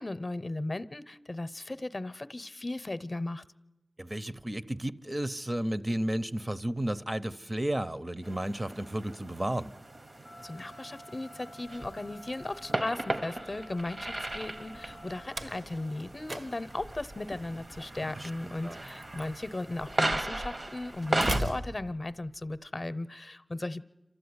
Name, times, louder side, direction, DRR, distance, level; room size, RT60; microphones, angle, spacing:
voice 1, 0.0-3.4 10.4-23.8, left 2 dB, 45° left, 0.7 m, -36 dB
voice 2, 4.0-9.7 18.2-18.8, right 1 dB, 30° right, 0.7 m, -33 dB
sound 1, 8.2-21.4, right 1 dB, 50° right, 1.0 m, -37 dB
sound 2, 10.2-15.2, equal, 90° right, 6.8 m, -51 dB
Slam, 11.7-22.6, right 1 dB, 75° right, 1.3 m, -41 dB
28.0 x 13.0 x 9.6 m
wide cardioid pair, 65°, 0 cm